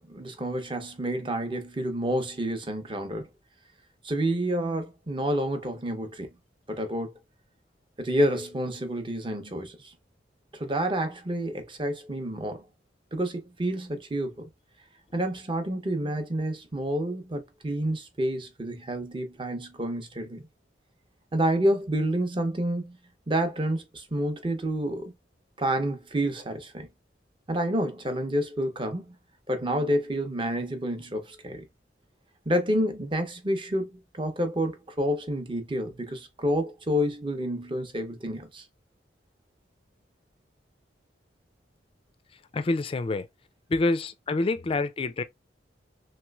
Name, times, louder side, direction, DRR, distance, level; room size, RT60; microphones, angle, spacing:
voice 1, 0.0-3.3 4.0-6.3 6.7-7.1 8.0-9.9 10.5-12.7 13.1-14.5 15.1-20.5 21.3-23.0 23.3-25.1 25.6-26.9 27.5-29.2 29.5-31.6 32.5-38.6, right 1 dB, 30° right, 0.7 m, -29 dB
voice 2, 42.5-43.3 43.7-45.2, left 2 dB, 30° left, 0.3 m, -27 dB
3.1 x 3.0 x 2.3 m
head